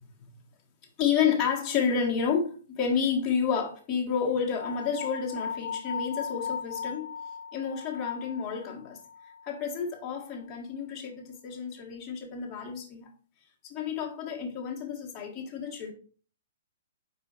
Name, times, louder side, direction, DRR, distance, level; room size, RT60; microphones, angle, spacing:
voice 1, 1.0-7.1 7.5-9.0 9.4-13.1 13.6-15.9, left 6 dB, 25° left, 1.6 m, -30 dB
sound 1, 4.6-9.7, left 7 dB, 85° left, 0.5 m, -38 dB
5.0 x 4.6 x 4.3 m
hypercardioid pair, 145°, 0 cm